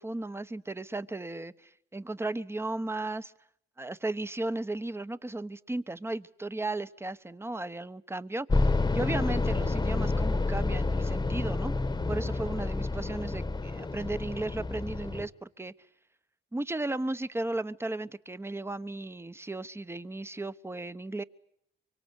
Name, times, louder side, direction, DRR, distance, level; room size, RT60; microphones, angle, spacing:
voice 1, 0.0-3.3 3.8-15.7 16.5-21.2, right 2 dB, 10° right, 15 dB, 1.0 m, -35 dB
sound 1, 8.5-15.3, left 3 dB, 20° left, 1.2 m, -29 dB
24.5 x 24.0 x 8.1 m, 0.73 s
cardioid pair, 90°, 20 cm